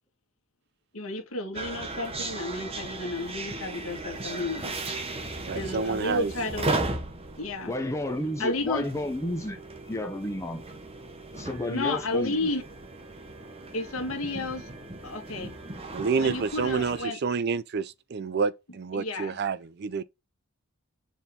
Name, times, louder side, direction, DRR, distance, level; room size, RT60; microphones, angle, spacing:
voice 1, 0.9-4.8 5.4-6.8 7.4-7.7 8.4-8.8 11.7-12.6 13.7-14.7 15.0-15.6 16.2-17.2 18.9-19.4, left 2 dB, 70° left, 1.8 m, -32 dB
sound 1, 1.5-17.1, right 2 dB, 25° right, 1.0 m, -36 dB
voice 2, 5.5-6.3 15.9-20.0, right 5 dB, 50° right, 0.4 m, -29 dB
voice 3, 7.7-9.6 9.9-10.6 11.3-12.5, left 1 dB, 15° left, 0.9 m, -31 dB
7.0 x 3.7 x 3.8 m
head